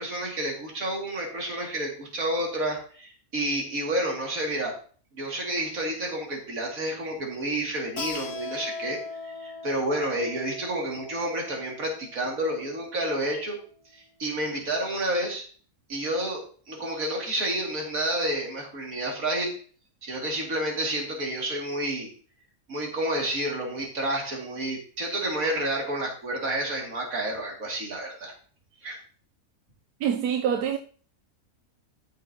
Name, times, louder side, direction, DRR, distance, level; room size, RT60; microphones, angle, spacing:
voice 1, 0.0-4.7 5.1-13.6 13.9-15.4 15.9-19.5 20.0-22.1 22.7-28.3 28.8-29.0, right 1 dB, 65° right, 2.8 m, -30 dB
Keyboard (musical), 8.0-13.2, left 4 dB, 90° left, 1.7 m, -40 dB
voice 2, 30.0-30.8, right 8 dB, 90° right, 1.1 m, -25 dB
13.0 x 6.7 x 2.8 m
omnidirectional pair, 1.6 m